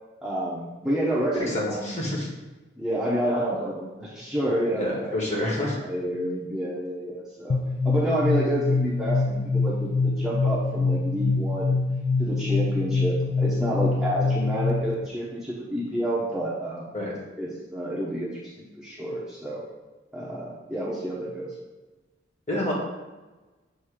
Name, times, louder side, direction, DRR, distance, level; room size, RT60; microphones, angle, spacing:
voice 1, 0.2-2.0 2.8-5.2 5.8-7.6 7.8-11.8 12.2-16.9 17.4-19.6 20.1-21.5, right 1 dB, 5° right, -7 dB, 0.8 m, -29 dB
voice 2, 1.3-2.3 4.7-5.8 16.9-17.1 22.5-22.7, left 1 dB, 35° left, -3 dB, 1.5 m, -28 dB
sound 1, 7.5-15.1, left 3 dB, 55° left, 0.3 m, -25 dB
7.3 x 2.7 x 4.9 m, 1.2 s
head